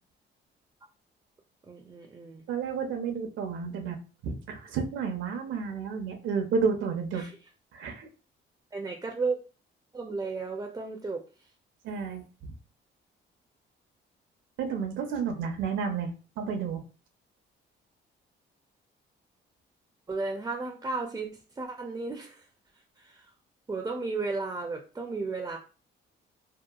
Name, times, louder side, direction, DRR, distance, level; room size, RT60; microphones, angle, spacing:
voice 1, 1.7-2.4 7.1-7.4 8.7-9.4 9.9-11.2 20.1-21.3 21.6-22.4 23.0-23.2 23.7-25.6, right 3 dB, 15° right, 3 dB, 0.4 m, -34 dB
voice 2, 2.5-4.0 4.2-7.2 7.7-8.1 11.8-12.2 14.6-16.8, right 6 dB, 80° right, 5 dB, 0.6 m, -31 dB
2.8 x 2.3 x 2.3 m, 0.36 s
cardioid pair, 90°, 20 cm